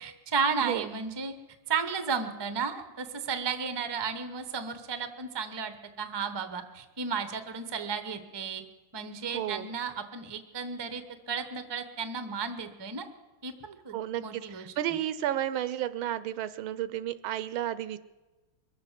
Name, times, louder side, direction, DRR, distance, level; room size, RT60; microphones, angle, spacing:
voice 1, 0.0-1.3 1.7-8.6 8.9-13.0 13.4-15.0, right 5 dB, 25° right, 9 dB, 0.6 m, -34 dB
voice 2, 9.3-9.7 13.9-18.0, right 12 dB, 80° right, 15 dB, 1.5 m, -32 dB
23.0 x 7.7 x 7.4 m, 1.2 s
omnidirectional pair, 2.3 m